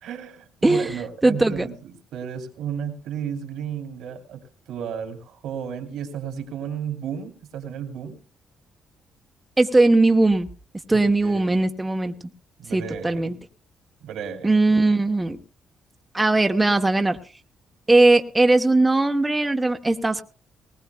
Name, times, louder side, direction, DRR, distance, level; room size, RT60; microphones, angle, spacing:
voice 1, 0.0-8.2 10.9-11.6 12.6-13.4 14.0-14.5, right 8 dB, 85° right, 4 dB, 2.6 m, -33 dB
voice 2, 0.6-0.9 1.2-1.7 9.6-10.5 10.9-12.1 12.7-13.4 14.4-15.4 16.1-17.2 17.9-20.2, right 2 dB, 15° right, 5 dB, 0.9 m, -19 dB
19.5 x 19.0 x 2.3 m, 0.37 s
cardioid pair, 90°, 0 cm